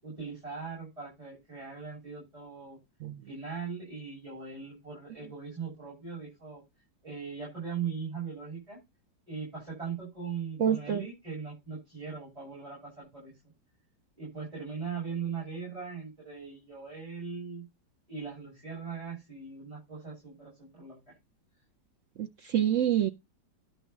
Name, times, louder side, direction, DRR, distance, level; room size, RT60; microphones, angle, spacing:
voice 1, 0.0-2.8 3.2-6.6 7.0-8.8 9.3-13.3 14.2-17.6 18.1-21.1, right 6 dB, 15° right, 7.0 m, -39 dB
voice 2, 10.6-11.0 22.2-23.1, right 10 dB, 70° right, 0.7 m, -27 dB
11.0 x 3.8 x 7.2 m
omnidirectional pair, 2.0 m